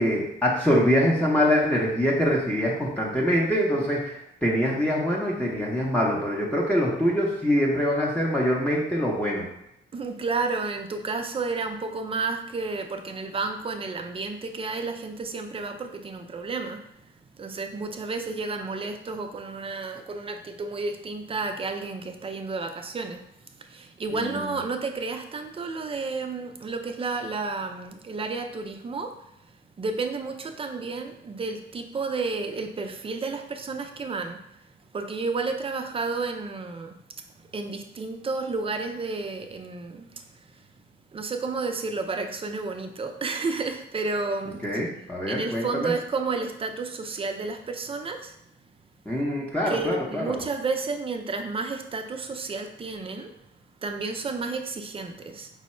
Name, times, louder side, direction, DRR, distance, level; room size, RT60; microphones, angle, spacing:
voice 1, 0.0-9.5 24.1-24.5 44.6-45.9 49.1-50.4, equal, 5° left, -5 dB, 0.7 m, -24 dB
voice 2, 9.9-17.1 17.4-23.2 23.6-29.3 29.8-34.4 34.9-37.0 37.4-40.2 40.5-40.7 41.1-44.6 45.3-48.4 49.7-53.3 53.8-55.5, right 4 dB, 30° right, 6 dB, 0.5 m, -31 dB
4.6 x 2.1 x 4.2 m, 0.79 s
cardioid pair, 90°, 20 cm